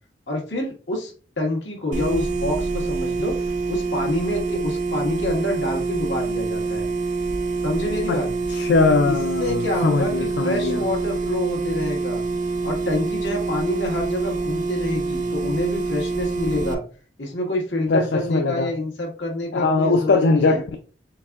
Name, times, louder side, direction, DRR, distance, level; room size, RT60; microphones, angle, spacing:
voice 1, 0.3-3.3 3.7-6.8 7.6-8.3 9.0-12.2 12.6-16.8 17.2-20.6, left 1 dB, 85° left, -1 dB, 1.6 m, -27 dB
sound 1, 1.9-16.7, right 3 dB, 45° right, 0.5 m, -26 dB
voice 2, 8.5-10.8 17.9-18.7 19.5-20.8, left 3 dB, 70° left, 6 dB, 0.4 m, -20 dB
4.6 x 3.6 x 2.3 m, 0.39 s
head